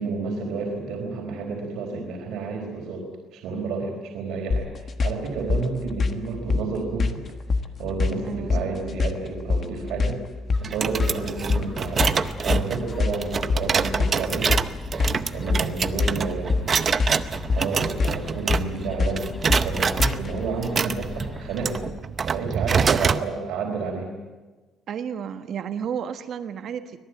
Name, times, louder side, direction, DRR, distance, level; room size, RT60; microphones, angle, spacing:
voice 1, 0.0-7.2 7.8-10.2 10.6-14.5 15.2-17.0 17.5-19.3 19.6-21.8 22.2-24.1, right 4 dB, 80° right, 1 dB, 4.2 m, -30 dB
sound 1, 4.5-20.4, left 4 dB, 35° left, 1.4 m, -26 dB
voice 2, 8.3-8.6 15.5-15.7 24.9-27.1, right 8 dB, 45° right, 9 dB, 1.4 m, -32 dB
sound 2, 10.5-21.8, left 1 dB, 15° left, 3.1 m, -39 dB
sound 3, 10.6-18.9 19.2-20.2 20.6-23.2, right 6 dB, 30° right, 0.7 m, -26 dB
24.5 x 18.5 x 9.1 m, 1.2 s
cardioid pair, 175°, 0 cm